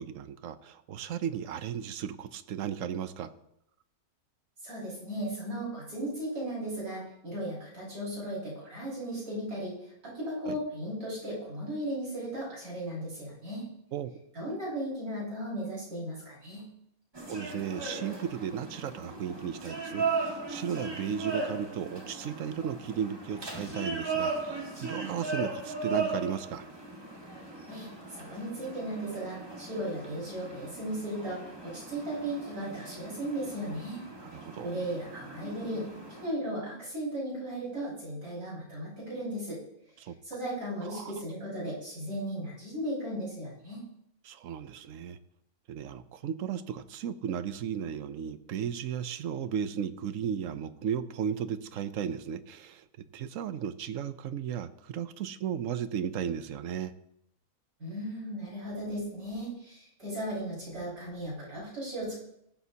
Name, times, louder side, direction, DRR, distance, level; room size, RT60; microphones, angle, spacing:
voice 1, 0.0-3.3 10.5-10.6 13.9-14.1 17.3-26.7 34.2-34.8 40.0-40.1 40.9-41.1 44.2-45.2 45.7-52.8 53.1-56.9, right 8 dB, 65° right, 13 dB, 1.0 m, -35 dB
voice 2, 4.6-9.7 10.0-13.7 14.3-16.7 27.7-34.0 34.6-39.6 40.2-43.9 57.8-62.2, right 1 dB, 85° right, -6 dB, 6.2 m, -36 dB
sound 1, 17.1-36.3, right 3 dB, 15° right, 1.8 m, -37 dB
15.5 x 12.5 x 2.8 m, 0.77 s
omnidirectional pair, 1.5 m